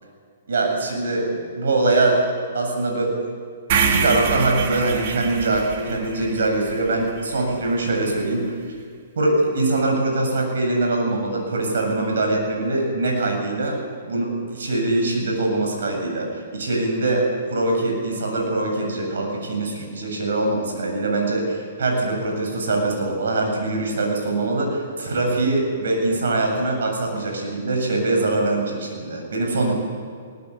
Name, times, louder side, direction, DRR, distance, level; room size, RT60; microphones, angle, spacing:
voice 1, 0.5-2.2 2.5-3.3 3.8-8.5 9.2-13.8 14.0-17.2 17.5-29.7, right 2 dB, 80° right, 1 dB, 7.9 m, -23 dB
sound 1, 3.7-7.8, right 6 dB, 50° right, 2.8 m, -26 dB
21.5 x 18.0 x 8.6 m, 2.2 s
hypercardioid pair, 145°, 0 cm